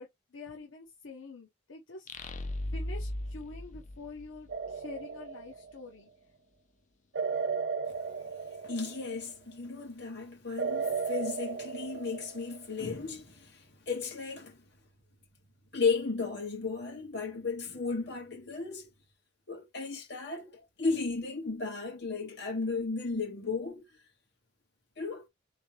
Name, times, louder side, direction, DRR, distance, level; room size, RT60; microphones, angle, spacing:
voice 1, 0.0-2.1 2.7-6.1, left 3 dB, 80° left, 0.8 m, -46 dB
sound 1, 2.1-4.7, left 1 dB, 40° left, 0.5 m, -37 dB
sound 2, 4.5-5.9 7.1-9.3 10.6-12.7, right 5 dB, 60° right, 0.6 m, -35 dB
voice 2, 8.6-14.6 15.7-18.9 19.5-20.5 20.8-23.8 25.0-25.2, left 4 dB, 55° left, 1.6 m, -34 dB
3.6 x 3.2 x 3.1 m
head